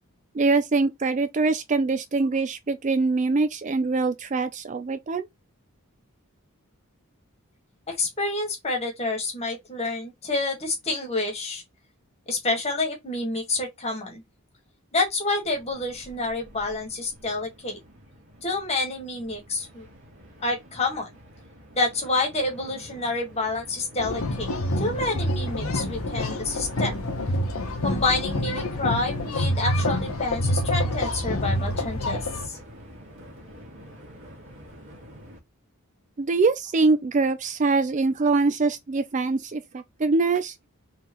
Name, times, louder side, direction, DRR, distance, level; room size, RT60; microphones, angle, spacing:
voice 1, 0.3-5.3 36.2-40.5, right 3 dB, 35° right, 0.4 m, -23 dB
voice 2, 7.9-11.6 12.3-14.2 14.9-17.8 18.4-19.9 20.4-21.1 21.8-27.0 27.8-32.6, left 2 dB, 30° left, 1.5 m, -28 dB
Train, 15.4-35.4, equal, 60° right, 1.9 m, -47 dB
sound 1, 24.0-32.5, left 1 dB, 65° left, 0.9 m, -27 dB
3.9 x 3.4 x 3.0 m
head